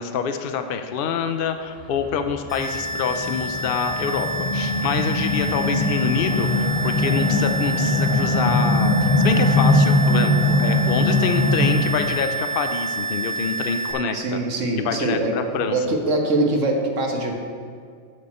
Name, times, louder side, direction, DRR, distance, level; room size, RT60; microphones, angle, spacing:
voice 1, 0.0-14.4 14.8-15.9, left 6 dB, 55° left, 8 dB, 0.8 m, -26 dB
sound 1, 1.8-12.2, left 2 dB, 30° left, 0.6 m, -21 dB
sound 2, 2.5-13.9, right 3 dB, ahead, 2.7 m, -28 dB
voice 2, 14.1-15.3 15.7-17.4, right 2 dB, 80° right, 2 dB, 1.6 m, -23 dB
12.5 x 6.8 x 4.3 m, 2.1 s
omnidirectional pair, 1.3 m